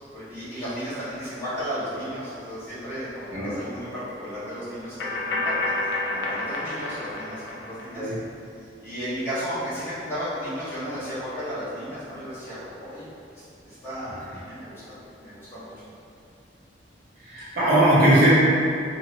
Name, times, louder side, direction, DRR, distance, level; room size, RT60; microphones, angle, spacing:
voice 1, 0.1-5.6 5.8-8.1 8.6-13.0 13.3-14.8 15.2-15.7, equal, 15° left, -15 dB, 1.4 m, -34 dB
sound 1, 2.9-3.0 5.0-7.9, left 2 dB, 70° left, 0.5 m, -29 dB
voice 2, 17.2-18.3, right 1 dB, 55° right, -11 dB, 0.7 m, -19 dB
2.8 x 2.8 x 2.7 m, 2.6 s
head